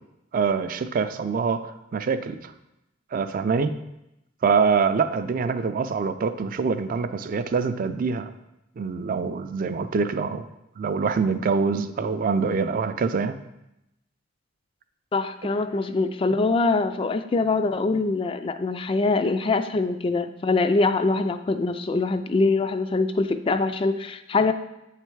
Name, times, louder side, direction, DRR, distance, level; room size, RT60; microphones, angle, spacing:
voice 1, 0.3-2.5 3.1-3.7 4.4-8.3 8.8-10.4 10.8-13.4, right 5 dB, 45° right, 10 dB, 0.4 m, -25 dB
voice 2, 15.1-24.5, left 3 dB, 30° left, 9 dB, 0.3 m, -23 dB
7.7 x 3.3 x 4.6 m, 0.89 s
head